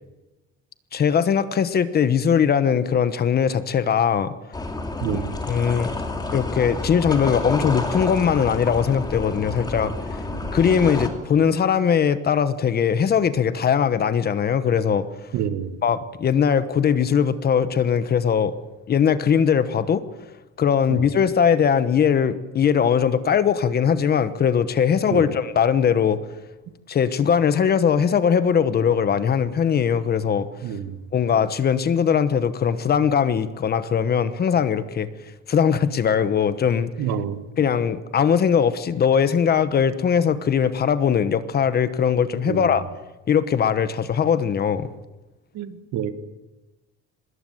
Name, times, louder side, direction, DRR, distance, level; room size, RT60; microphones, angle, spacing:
voice 1, 0.9-4.3 5.1-5.2 5.5-5.9 6.3-9.9 10.5-15.1 15.8-18.5 18.9-20.0 20.6-26.2 26.9-30.5 31.1-35.1 35.5-36.9 37.6-42.9 43.3-44.9, left 7 dB, 30° left, 13 dB, 1.1 m, -20 dB
sound 1, 4.5-11.1, left 2 dB, 15° left, 2.8 m, -29 dB
voice 2, 5.0-5.3 10.3-10.4 15.3-15.8 20.9-21.0 25.1-25.2 30.6-31.0 37.0-37.4 42.5-42.7 45.5-46.1, right 9 dB, 65° right, 11 dB, 1.8 m, -28 dB
24.5 x 21.0 x 7.9 m, 1.1 s
cardioid pair, 175°, 30 cm